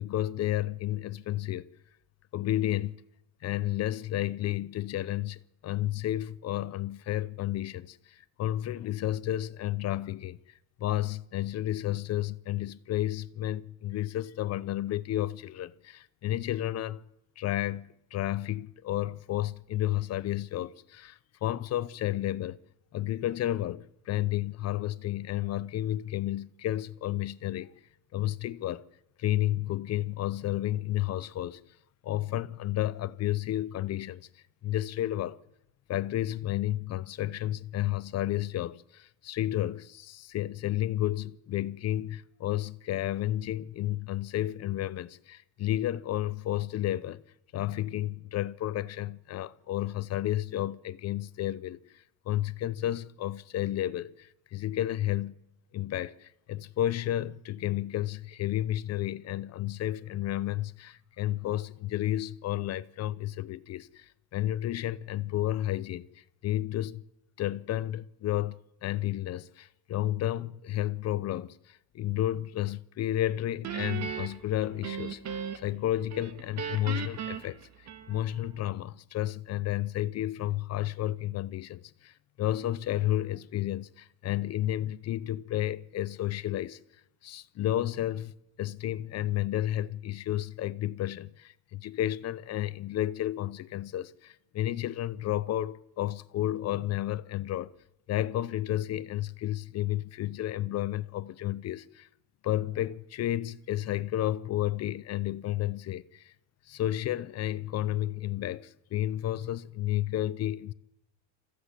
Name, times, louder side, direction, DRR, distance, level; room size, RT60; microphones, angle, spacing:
voice 1, 0.0-1.7 2.3-2.9 3.4-10.4 10.8-17.0 17.4-22.6 22.9-27.7 28.1-28.8 29.2-31.6 32.0-34.3 34.6-35.4 35.9-47.2 47.5-51.8 52.3-55.3 55.7-66.1 66.4-67.0 67.4-77.6 78.1-86.8 87.2-88.3 88.6-97.7 98.1-102.1 102.4-106.3 106.7-110.7, left 13 dB, 40° left, 0.7 m, -31 dB
Guitar, 73.6-75.8 76.1-78.4, right 8 dB, 40° right, 1.8 m, -37 dB
26.5 x 15.0 x 8.3 m
cardioid pair, 160°, 41 cm